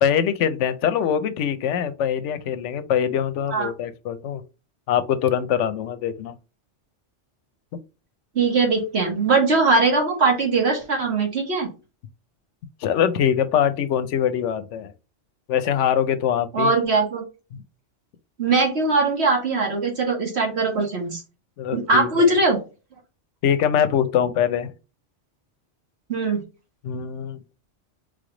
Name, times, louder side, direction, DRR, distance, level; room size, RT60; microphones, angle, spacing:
voice 1, 0.0-4.4 4.9-6.3 12.8-14.9 15.5-16.7 17.5-17.6 21.6-22.3 23.4-24.7 26.8-27.4, left 9 dB, 85° left, 0.9 m, -23 dB
voice 2, 8.3-11.7 16.5-17.2 18.4-21.2 21.7-22.6 26.1-26.4, right 3 dB, 65° right, 1.7 m, -21 dB
3.7 x 3.4 x 3.7 m
omnidirectional pair, 1.2 m